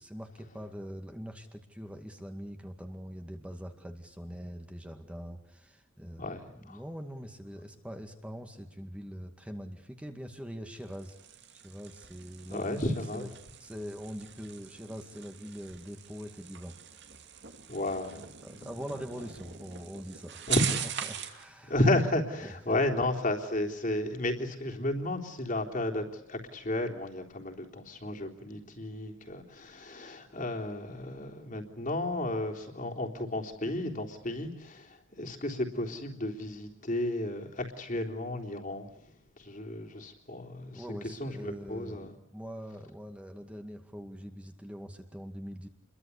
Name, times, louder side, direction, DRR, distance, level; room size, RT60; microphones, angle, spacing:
voice 1, 0.0-11.2 11.5-12.8 13.1-13.3 13.6-16.7 18.0-20.5 21.0-21.8 22.4-22.8 40.7-45.7, equal, 5° right, 5 dB, 2.1 m, -43 dB
voice 2, 6.2-6.8 12.5-13.3 17.7-18.2 20.5-20.8 21.6-38.9 39.4-42.2, left 1 dB, 40° left, 3 dB, 3.6 m, -33 dB
sound 1, 10.7-21.4, right 9 dB, 55° right, 2.6 m, -41 dB
29.5 x 22.5 x 8.4 m, 0.77 s
head